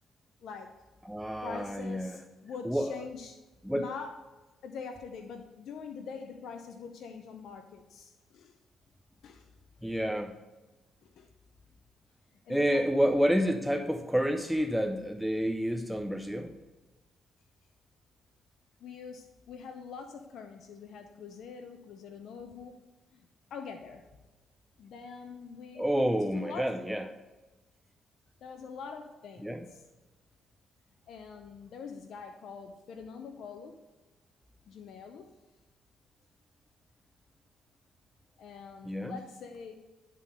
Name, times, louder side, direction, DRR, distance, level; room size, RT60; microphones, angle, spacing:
voice 1, 0.4-0.8 1.4-3.4 3.7-4.2 4.6-8.6 9.2-9.5 11.0-11.3 12.5-12.9 18.8-22.8 23.1-24.0 24.8-26.7 28.4-29.8 31.1-33.8 34.7-35.3 38.4-39.7, left 5 dB, 70° left, 5 dB, 0.6 m, -44 dB
voice 2, 1.0-2.2 2.6-2.9 3.6-3.9 9.8-10.3 12.5-16.5 25.8-27.0 29.4-29.7 38.9-39.2, equal, ahead, 4 dB, 0.5 m, -29 dB
10.0 x 3.8 x 6.5 m, 1.1 s
cardioid pair, 90°, 0 cm